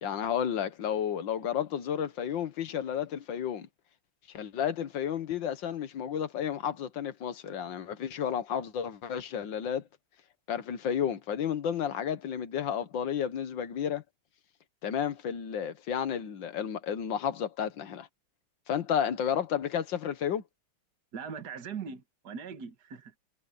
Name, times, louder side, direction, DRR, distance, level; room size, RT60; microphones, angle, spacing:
voice 1, 0.0-3.7 4.3-9.8 10.5-14.0 14.8-18.1 18.7-20.4, left 8 dB, 70° left, 1.9 m, -32 dB
voice 2, 21.1-23.1, right 6 dB, 55° right, 2.2 m, -40 dB
omnidirectional pair, 2.2 m